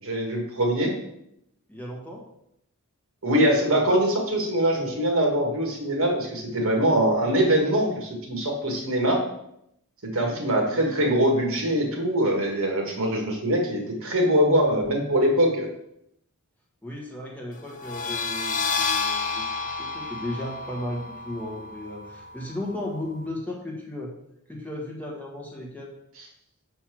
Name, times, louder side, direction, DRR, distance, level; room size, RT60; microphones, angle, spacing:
voice 1, 0.0-0.9 3.2-9.2 10.1-15.7, equal, 65° right, 1 dB, 1.6 m, -23 dB
voice 2, 1.7-2.2 10.1-10.4 10.7-10.9 16.8-24.1 24.5-25.9, left 1 dB, 5° left, -2 dB, 1.2 m, -35 dB
sound 1, 17.7-23.2, left 4 dB, 35° left, 0.7 m, -31 dB
5.6 x 4.4 x 6.1 m, 0.77 s
head